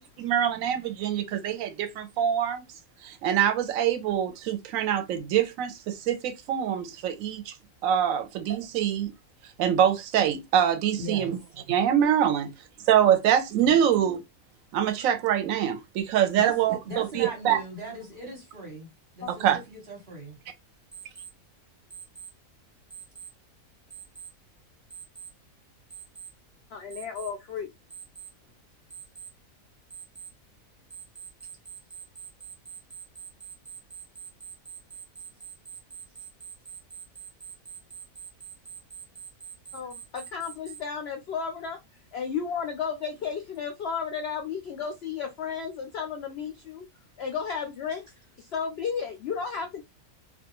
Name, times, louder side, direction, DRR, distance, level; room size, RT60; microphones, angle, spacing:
voice 1, 0.0-2.6 3.0-7.5 7.8-9.1 9.6-11.4 11.7-12.5 12.9-14.2 14.7-17.6 19.3-19.6, right 9 dB, 70° right, 0.9 m, -24 dB
voice 2, 11.0-11.3 16.3-18.9 19.1-20.4, right 1 dB, 45° right, 1.0 m, -39 dB
Alarm, 20.9-21.3 21.9-22.3 22.9-23.3 23.9-24.3 24.9-25.3 25.9-26.3 26.9-27.3 27.9-28.3 28.9-29.3 29.9-30.3 30.9-40.8, right 7 dB, 20° right, 0.5 m, -43 dB
voice 3, 26.7-27.7 39.7-41.8 42.1-46.9 47.2-48.1 48.4-49.8, left 6 dB, 75° left, 0.6 m, -33 dB
2.4 x 2.3 x 2.9 m
omnidirectional pair, 1.6 m